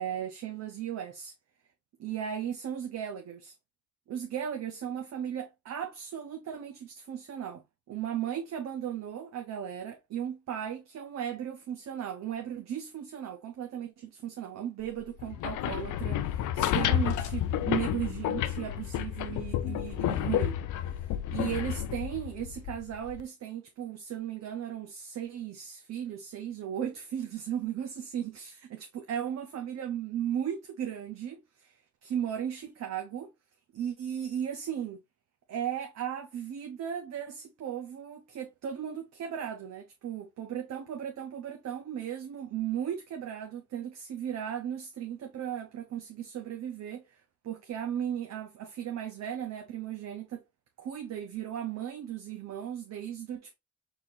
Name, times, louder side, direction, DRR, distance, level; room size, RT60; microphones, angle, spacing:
voice 1, 0.0-1.3 2.0-3.5 4.1-7.6 7.9-20.6 20.9-33.3 33.7-35.0 35.5-50.4 50.8-53.5, right 9 dB, 60° right, 0.8 m, -36 dB
sound 1, 15.2-23.2, left 11 dB, 80° left, 0.5 m, -31 dB
4.3 x 3.9 x 2.6 m
cardioid pair, 90°, 30 cm